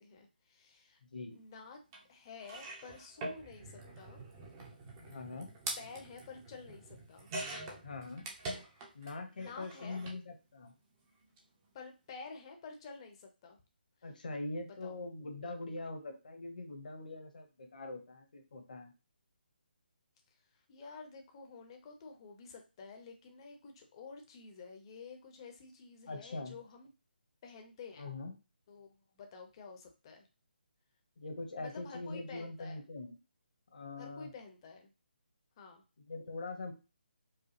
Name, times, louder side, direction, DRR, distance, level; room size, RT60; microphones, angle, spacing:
voice 1, 0.0-1.0 1.3-1.8 2.1-4.2 5.8-7.8 9.3-10.0 11.7-13.6 14.8-15.0 20.7-26.9 27.4-28.1 28.7-30.3 31.6-32.8 34.0-34.9 35.6-35.8, left 4 dB, 30° left, 4 dB, 0.8 m, -50 dB
voice 2, 1.0-1.4 5.1-5.5 7.8-8.3 8.9-10.7 14.0-18.9 26.0-26.6 28.0-28.3 31.2-33.2 33.7-34.3 36.1-36.7, left 2 dB, 50° left, 5 dB, 1.0 m, -43 dB
sound 1, 1.9-2.0 2.4-9.1 9.4-10.2 11.2-11.4 11.6-11.7, right 2 dB, 20° right, 0.7 m, -45 dB
4.8 x 2.3 x 3.0 m, 0.30 s
figure-of-eight pair, 145°, 6 cm